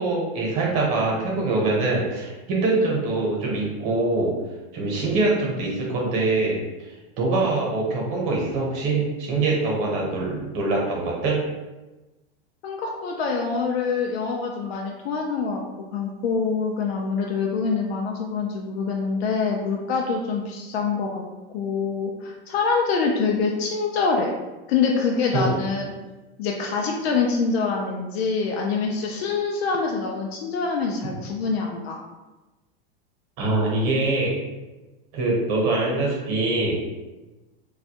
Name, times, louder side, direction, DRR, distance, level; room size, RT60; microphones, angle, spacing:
voice 1, 0.0-4.3 4.7-6.6 7.2-11.4 25.3-25.5 33.4-34.3 35.1-36.8, right 2 dB, 45° right, -2 dB, 0.9 m, -23 dB
voice 2, 12.6-21.2 21.5-24.3 24.7-25.9 26.4-32.0, left 4 dB, 90° left, 0 dB, 0.5 m, -25 dB
2.3 x 2.1 x 2.8 m, 1.1 s
supercardioid pair, 145°, 30 cm